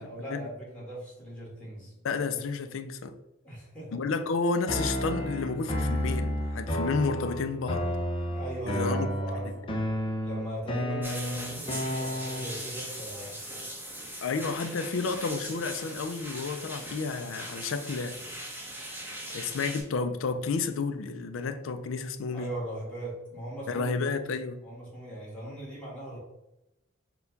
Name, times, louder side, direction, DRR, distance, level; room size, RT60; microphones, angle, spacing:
voice 1, 0.0-1.9 3.4-4.0 8.3-9.7 10.2-13.4 22.3-24.2 24.6-26.2, right 1 dB, 5° left, 1.4 m, -39 dB
voice 2, 2.0-3.2 3.9-7.9 8.7-9.1 14.2-18.2 19.3-22.5 23.7-24.6, left 4 dB, 80° left, 0.4 m, -31 dB
sound 1, 4.7-12.7, equal, 25° left, 0.6 m, -31 dB
sound 2, 11.0-19.8, right 1 dB, 10° right, 1.1 m, -40 dB
4.4 x 2.3 x 3.9 m
head